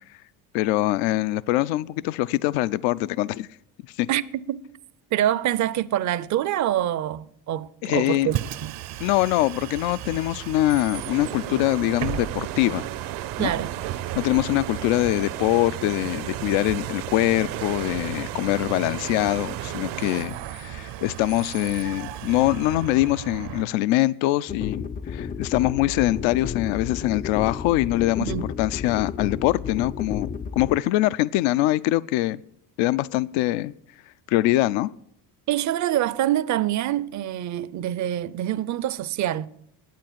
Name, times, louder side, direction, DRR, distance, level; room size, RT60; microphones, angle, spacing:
voice 1, 0.5-3.5 4.0-4.1 7.8-8.3 9.0-12.9 13.4-13.5 14.2-24.8 25.1-28.3 28.6-30.3 30.6-32.4 32.8-33.7 34.3-34.9, left 16 dB, 70° left, 0.5 m, -23 dB
voice 2, 4.1-4.6 5.1-8.7 13.4-13.8 28.2-28.5 35.5-39.5, right 12 dB, 40° right, 0.6 m, -25 dB
Bus, 8.2-23.7, right 12 dB, 60° right, 0.8 m, -35 dB
sound 1, 10.9-20.2, right 12 dB, 80° right, 1.1 m, -35 dB
sound 2, 24.5-30.8, left 6 dB, 20° left, 0.4 m, -32 dB
10.5 x 8.5 x 7.4 m
supercardioid pair, 85°, 48 cm